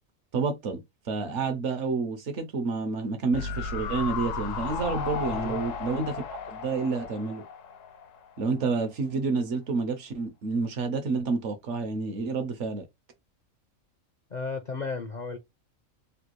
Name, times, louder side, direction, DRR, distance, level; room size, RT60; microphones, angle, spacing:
voice 1, 0.3-7.4 8.4-12.9, right 4 dB, 60° right, 0.9 m, -29 dB
sound 1, 3.3-8.6 8.9-9.0, left 5 dB, 70° left, 0.9 m, -35 dB
voice 2, 5.3-5.6 14.3-15.4, left 4 dB, 55° left, 0.5 m, -34 dB
3.4 x 2.3 x 3.0 m
omnidirectional pair, 1.5 m